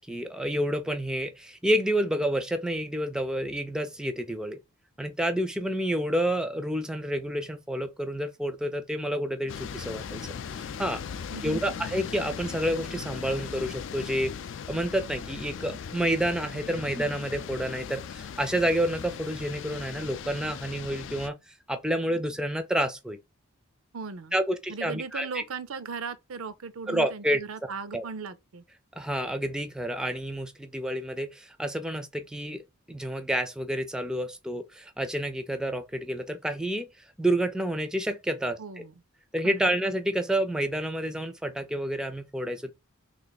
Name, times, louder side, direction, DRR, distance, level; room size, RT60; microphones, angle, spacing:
voice 1, 0.0-4.6 5.0-10.3 10.8-11.0 11.4-14.3 14.7-23.2 24.3-25.4 26.9-27.4 27.9-28.1 29.0-32.6 32.9-36.9 37.2-38.6 39.3-42.7, right 1 dB, 5° right, 0.4 m, -29 dB
sound 1, 9.5-21.3, left 7 dB, 60° left, 0.3 m, -38 dB
voice 2, 11.3-11.6 23.9-24.3 24.7-28.6 38.6-38.9 39.4-39.6, right 5 dB, 80° right, 0.6 m, -38 dB
3.3 x 3.2 x 4.0 m
head